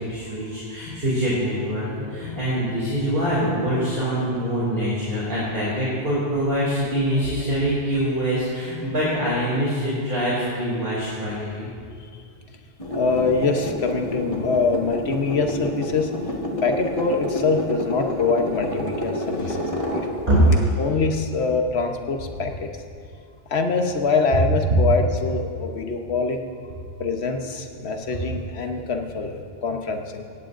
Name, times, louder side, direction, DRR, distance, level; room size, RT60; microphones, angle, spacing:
voice 1, 0.1-11.7 19.3-19.5 20.3-20.4, equal, 60° right, -8 dB, 3.2 m, -24 dB
sound 1, 12.8-20.5, left 1 dB, 30° left, 1.5 m, -29 dB
voice 2, 12.9-16.1 16.6-20.1 20.8-22.7 23.5-26.5 27.0-30.3, left 4 dB, 75° left, 4 dB, 1.3 m, -24 dB
17.0 x 16.5 x 2.6 m, 2.3 s
omnidirectional pair, 1.1 m